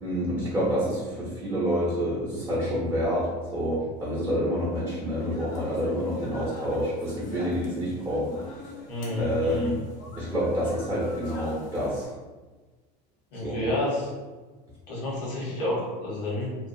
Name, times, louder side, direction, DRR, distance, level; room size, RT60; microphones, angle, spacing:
voice 1, 0.0-8.6 9.2-9.8 10.2-12.1 13.4-13.7, equal, 10° right, -8 dB, 0.8 m, -28 dB
sound 1, 4.5-12.1, left 2 dB, 65° left, 0.7 m, -45 dB
voice 2, 8.9-9.7 13.3-14.1 14.9-16.6, left 1 dB, 90° left, -5 dB, 1.2 m, -30 dB
2.6 x 2.3 x 2.7 m, 1.3 s
supercardioid pair, 130°, 20 cm